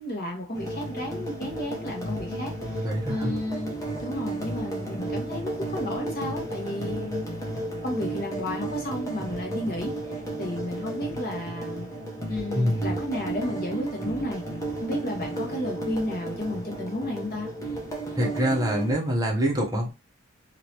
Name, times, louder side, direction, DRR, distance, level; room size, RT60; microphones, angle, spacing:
voice 1, 0.0-7.2 7.8-11.9 12.3-14.4 14.8-17.5, left 1 dB, 45° left, 1 dB, 1.2 m, -33 dB
sound 1, 0.5-18.9, right 2 dB, 15° left, 0.8 m, -33 dB
voice 2, 2.8-3.3 12.5-13.0 18.2-19.9, equal, 15° right, -1 dB, 0.9 m, -25 dB
3.2 x 2.8 x 2.8 m, 0.27 s
head